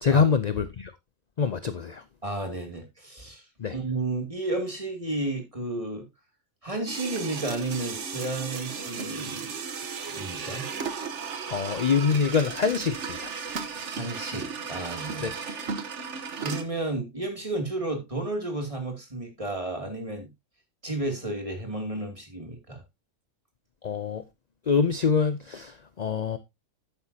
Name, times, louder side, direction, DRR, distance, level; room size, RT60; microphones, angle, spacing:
voice 1, 0.0-0.9 1.4-2.0 3.6-3.7 11.5-13.3 15.2-15.3 23.8-24.2 24.7-26.4, left 5 dB, 50° left, 0.5 m, -25 dB
voice 2, 2.2-3.4 3.7-6.1 6.6-9.5 10.1-10.7 13.9-15.3 16.4-20.3 20.8-22.8, right 2 dB, 25° right, 2.7 m, -32 dB
sound 1, 6.9-16.6, right 5 dB, 60° right, 1.4 m, -35 dB
10.5 x 9.1 x 2.8 m
omnidirectional pair, 1.4 m